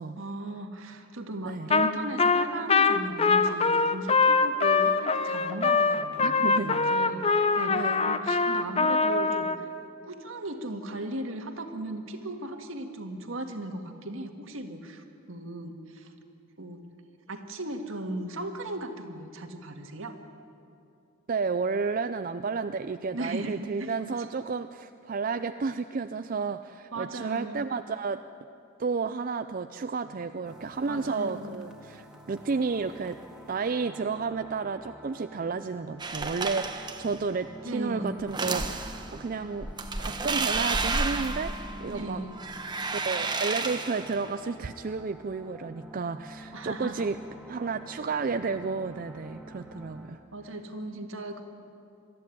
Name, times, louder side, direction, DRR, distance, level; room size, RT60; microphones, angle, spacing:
voice 1, 0.2-9.7 10.0-16.1 16.6-16.9 17.3-20.2 23.1-24.1 26.9-27.6 30.9-31.6 37.6-38.1 41.9-42.4 46.5-47.1 50.3-51.4, right 1 dB, 75° right, 5 dB, 1.9 m, -37 dB
Trumpet, 1.7-1.9 2.2-9.6, left 4 dB, 30° left, 0.7 m, -23 dB
voice 2, 6.2-7.1 7.7-8.1 21.3-28.2 28.8-33.2 33.5-39.7 40.0-42.2 42.9-47.2 47.5-50.2, right 4 dB, 45° right, 10 dB, 0.4 m, -32 dB
sound 1, 30.4-50.1, equal, 5° right, 1.8 m, -47 dB
sound 2, 36.0-37.2 38.2-39.1 39.6-42.0 42.4-44.2, right 3 dB, 20° right, 1.1 m, -31 dB
22.5 x 14.0 x 10.0 m, 2.6 s
head